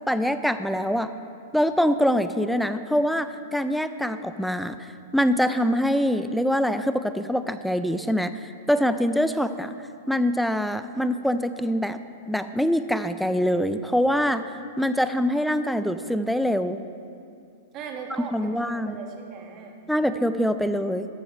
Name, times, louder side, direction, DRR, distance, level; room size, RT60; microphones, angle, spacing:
voice 1, 0.1-1.1 1.5-8.3 8.7-9.7 10.1-12.0 12.3-14.4 14.8-16.8 18.3-19.0 19.9-21.1, equal, ahead, 10 dB, 0.4 m, -24 dB
voice 2, 17.7-19.8, right 5 dB, 35° right, 3 dB, 1.4 m, -38 dB
13.0 x 4.6 x 6.6 m, 2.5 s
hypercardioid pair, 135°, 0 cm